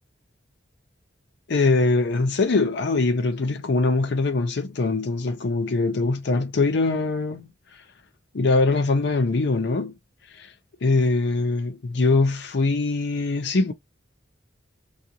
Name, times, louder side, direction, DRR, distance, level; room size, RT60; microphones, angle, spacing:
voice 1, 1.5-7.5 8.3-10.0 10.3-10.5 10.8-13.7, left 3 dB, 65° left, 0.6 m, -22 dB
3.7 x 2.4 x 2.8 m
head